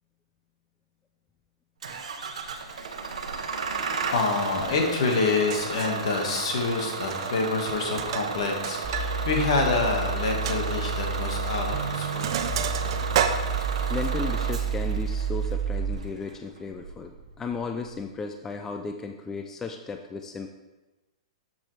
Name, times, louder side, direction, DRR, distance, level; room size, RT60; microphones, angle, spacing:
Bus / Engine starting, 1.8-18.0, right 5 dB, 90° right, 0.9 m, -34 dB
voice 1, 4.1-12.4, left 3 dB, 65° left, 1 dB, 1.8 m, -27 dB
Sink (filling or washing), 5.1-5.2 5.5-6.0 7.0-7.4 7.7-9.1 9.4-9.5 9.9-10.0 10.5-10.6 11.5-11.7 11.9-14.1, right 9 dB, 50° right, 0.6 m, -30 dB
sound 1, 8.8-15.9, right 5 dB, 25° right, 1.0 m, -30 dB
voice 2, 13.9-20.5, left 4 dB, 10° left, 5 dB, 0.3 m, -35 dB
7.4 x 7.3 x 3.3 m, 1.1 s
hypercardioid pair, 155°, 3 cm